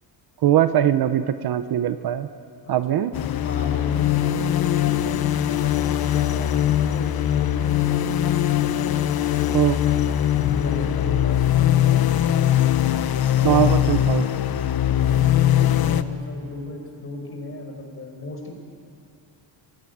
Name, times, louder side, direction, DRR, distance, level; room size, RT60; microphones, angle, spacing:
voice 1, 0.4-2.3 2.7-3.1 9.5-9.8 13.4-14.3, right 11 dB, 50° right, 11 dB, 0.8 m, -21 dB
voice 2, 2.6-3.0 3.4-10.1 10.5-12.6 13.3-18.5, left 2 dB, 25° left, 1 dB, 5.3 m, -37 dB
sound 1, 3.1-16.0, left 11 dB, 50° left, 1.0 m, -21 dB
27.5 x 17.5 x 9.3 m, 2.6 s
cardioid pair, 170°, 48 cm